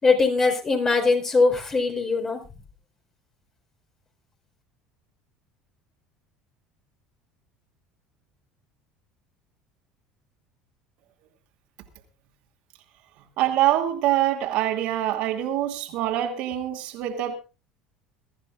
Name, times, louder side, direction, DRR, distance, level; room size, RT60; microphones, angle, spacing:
voice 1, 0.0-2.4, left 4 dB, 25° left, 4.5 m, -21 dB
voice 2, 13.4-17.3, right 12 dB, 60° right, 2.6 m, -24 dB
22.5 x 14.0 x 2.5 m
figure-of-eight pair, 65°, 2 cm